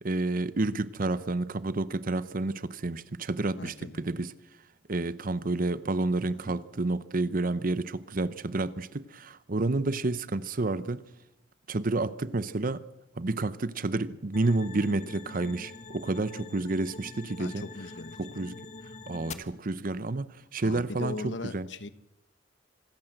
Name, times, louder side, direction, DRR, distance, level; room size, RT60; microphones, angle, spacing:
voice 1, 0.0-4.3 4.9-11.0 11.7-12.8 13.2-17.6 18.2-18.6 19.1-21.7, right 2 dB, 50° right, 0.8 m, -30 dB
voice 2, 3.6-4.0 6.4-6.6 17.4-18.4 19.3-19.6 20.6-21.9, left 2 dB, 70° left, 1.2 m, -39 dB
sound 1, 14.3-19.3, left 3 dB, 40° left, 1.4 m, -44 dB
26.5 x 15.0 x 7.9 m
head